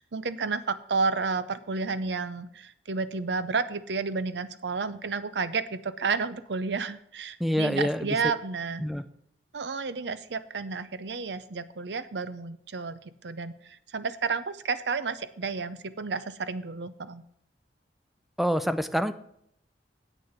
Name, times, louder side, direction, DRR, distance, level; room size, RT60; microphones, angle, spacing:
voice 1, 0.0-8.8 9.5-17.2, right 4 dB, 75° right, 14 dB, 0.6 m, -31 dB
voice 2, 7.4-8.2 8.8-9.0 18.4-19.1, equal, ahead, 11 dB, 0.5 m, -26 dB
8.5 x 6.6 x 7.1 m, 0.72 s
head